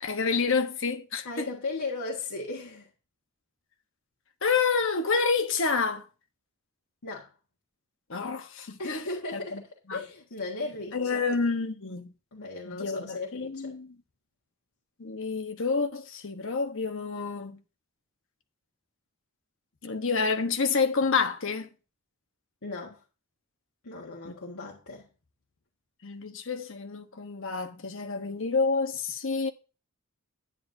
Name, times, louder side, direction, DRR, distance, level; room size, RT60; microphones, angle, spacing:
voice 1, 0.0-1.4 4.4-6.0 8.1-9.0 9.3-9.6 9.9-10.0 10.9-12.1 12.7-13.9 15.0-17.6 19.8-21.7 24.2-24.3 26.0-29.5, left 4 dB, 60° left, 1.1 m, -28 dB
voice 2, 1.2-2.9 7.0-7.3 8.8-11.2 12.3-13.7 22.6-23.0 23.8-25.1, left 3 dB, 80° left, 1.6 m, -37 dB
10.5 x 9.9 x 2.7 m
head